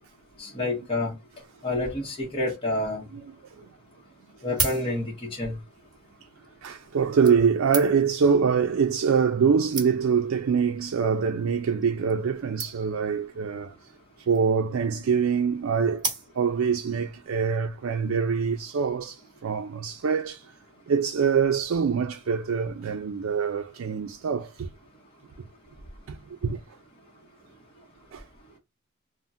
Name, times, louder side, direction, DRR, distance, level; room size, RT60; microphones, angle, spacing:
voice 1, 0.4-1.2 1.6-3.0 4.4-5.6, left 2 dB, 25° left, 0.9 m, -28 dB
voice 2, 3.1-3.6 6.6-13.8 14.2-16.1 16.3-20.5 20.9-24.7 26.1-26.6 28.1-28.2, right 6 dB, 70° right, 0.4 m, -25 dB
sound 1, 4.3-5.4 6.3-6.5 7.2-8.2 9.1-9.2 9.4-9.5 9.7-10.3 11.0-11.2 11.5-11.6 11.8-11.9 12.1-12.2 12.6-13.1 14.1-14.6 16.0-16.7 17.2-17.3, right 4 dB, 20° right, 1.2 m, -33 dB
3.5 x 2.1 x 2.5 m
head